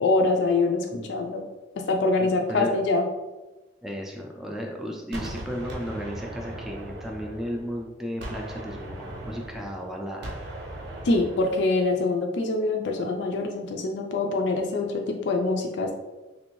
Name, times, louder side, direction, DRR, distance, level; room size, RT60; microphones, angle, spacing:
voice 1, 0.0-1.4 1.8-3.1 11.0-15.9, left 3 dB, 70° left, 3 dB, 0.4 m, -24 dB
voice 2, 2.2-2.8 3.8-10.3, equal, ahead, 0 dB, 0.3 m, -34 dB
Gunshot gunfire, 5.1-7.8 8.2-11.8, right 1 dB, 70° right, 0.7 m, -38 dB
3.3 x 2.5 x 3.0 m, 1.1 s
head